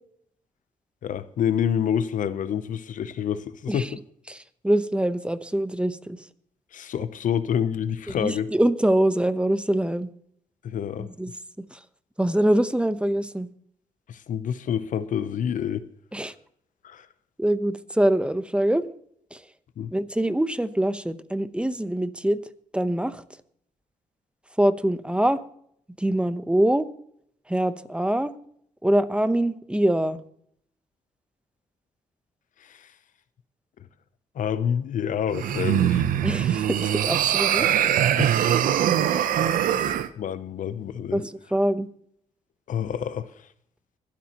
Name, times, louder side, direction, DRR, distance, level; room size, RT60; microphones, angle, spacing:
voice 1, 1.0-3.9 6.7-8.5 10.6-11.1 14.1-15.9 16.8-17.1 19.8-19.9 32.7-32.9 34.4-36.1 38.2-38.5 40.2-41.2 42.7-43.3, left 8 dB, 70° left, 0.7 m, -27 dB
voice 2, 4.3-6.3 8.1-10.1 11.0-11.8 12.2-13.5 16.1-16.3 17.4-18.9 19.3-19.4 19.9-22.4 22.7-23.2 24.6-25.4 26.0-26.9 27.5-28.3 28.8-30.2 36.2-38.0 39.7-39.9 41.1-41.9, right 1 dB, 10° right, 0.9 m, -24 dB
sound 1, 35.3-40.1, right 10 dB, 85° right, 0.7 m, -22 dB
25.0 x 8.4 x 3.0 m
cardioid pair, 75°, 14 cm